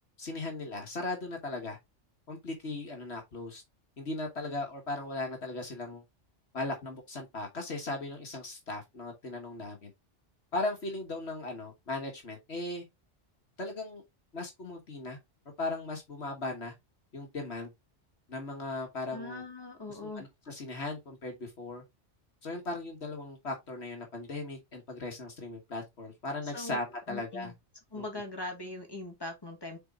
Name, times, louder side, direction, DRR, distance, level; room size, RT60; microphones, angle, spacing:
voice 1, 0.2-1.8 2.3-3.6 4.0-6.0 6.5-9.9 10.5-12.8 13.6-14.0 14.3-15.2 15.6-16.7 17.1-17.7 18.3-19.4 19.9-21.8 22.4-27.5 28.0-28.1, left 2 dB, 65° left, 1.8 m, -37 dB
voice 2, 19.1-20.3 26.5-26.8 27.1-27.5 27.9-29.8, left 2 dB, 20° left, 1.7 m, -40 dB
6.6 x 4.1 x 3.6 m
omnidirectional pair, 1.2 m